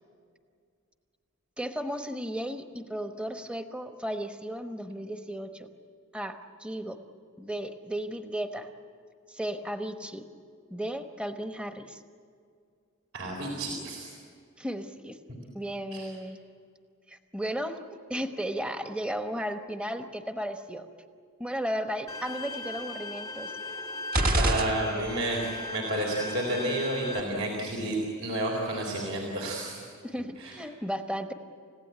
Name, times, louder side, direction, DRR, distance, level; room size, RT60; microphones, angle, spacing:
voice 1, 1.6-5.7 6.1-7.0 7.4-8.7 9.3-10.3 10.7-12.0 14.6-15.2 15.5-16.4 17.1-17.8 18.1-20.9 21.4-23.5 30.0-31.3, equal, 5° right, 6 dB, 1.1 m, -34 dB
voice 2, 13.1-14.1 15.9-16.1 24.3-29.8 30.4-30.5, right 1 dB, 65° right, -1 dB, 4.0 m, -31 dB
Bowed string instrument, 22.1-27.2, left 2 dB, 15° left, 0.8 m, -38 dB
sound 1, 24.1-25.4, right 1 dB, 45° right, 1.5 m, -27 dB
29.5 x 16.0 x 9.5 m, 2.2 s
head